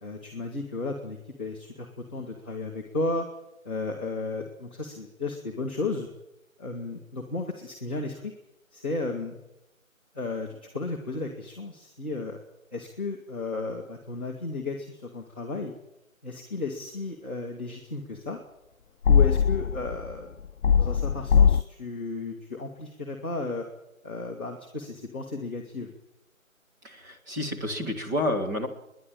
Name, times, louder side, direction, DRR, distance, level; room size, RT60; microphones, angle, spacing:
voice 1, 0.0-3.3 3.6-6.1 6.6-8.3 8.7-9.4 10.1-10.5 10.7-12.4 12.7-15.7 16.2-18.4 19.1-20.3 20.8-23.6 24.0-25.9, left 3 dB, 5° left, -9 dB, 0.8 m, -34 dB
sound 1, 19.0-20.1 20.6-21.6, left 7 dB, 75° left, 0.7 m, -20 dB
voice 2, 26.8-28.7, left 1 dB, 15° right, -1 dB, 1.7 m, -29 dB
29.5 x 11.0 x 8.8 m, 0.90 s
figure-of-eight pair, 165°, 41 cm